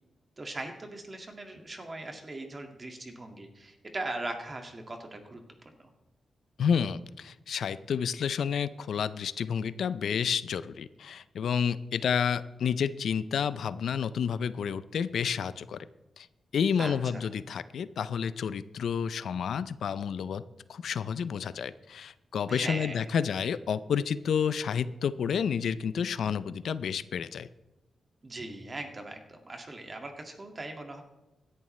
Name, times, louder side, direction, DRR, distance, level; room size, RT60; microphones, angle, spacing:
voice 1, 0.4-5.4 5.8-5.9 16.8-17.3 22.5-23.1 28.2-31.0, right 2 dB, 30° right, 4 dB, 1.9 m, -39 dB
voice 2, 6.6-15.9 16.2-16.3 16.5-20.4 20.7-27.5, left 7 dB, 75° left, 15 dB, 0.4 m, -30 dB
16.5 x 11.0 x 3.2 m, 1.0 s
cardioid pair, 100°, 0 cm